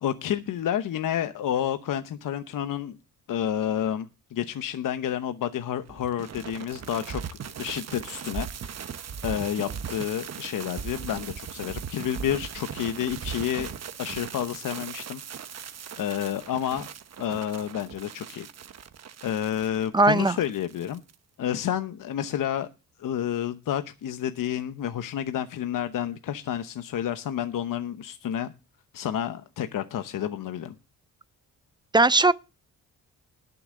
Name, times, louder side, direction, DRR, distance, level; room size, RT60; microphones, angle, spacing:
voice 1, 0.0-3.0 3.3-7.2 7.6-8.8 9.2-13.7 14.0-15.2 16.0-16.9 17.2-18.5 19.2-21.0 21.4-22.7 23.0-28.5 28.9-30.7, left 10 dB, 65° left, 1.0 m, -30 dB
sound 1, 5.9-21.1, right 7 dB, 45° right, 1.2 m, -38 dB
voice 2, 19.9-20.4 31.9-32.3, right 2 dB, 15° right, 0.6 m, -18 dB
19.5 x 7.0 x 3.8 m
cardioid pair, 100°, 35 cm